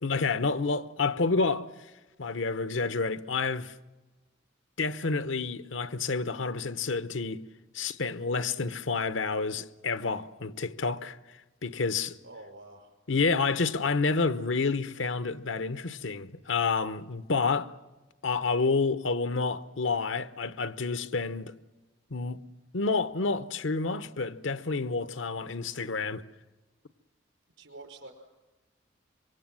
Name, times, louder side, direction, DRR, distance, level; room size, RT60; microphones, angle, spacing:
voice 1, 0.0-1.7 2.2-3.7 4.8-7.4 7.7-11.2 11.6-12.2 13.1-17.7 18.2-21.5 22.1-22.4 22.7-26.2, left 4 dB, 85° left, 0.9 m, -29 dB
voice 2, 12.2-12.9 27.6-28.1, right 2 dB, 85° right, 5.0 m, -47 dB
26.0 x 23.5 x 7.6 m
head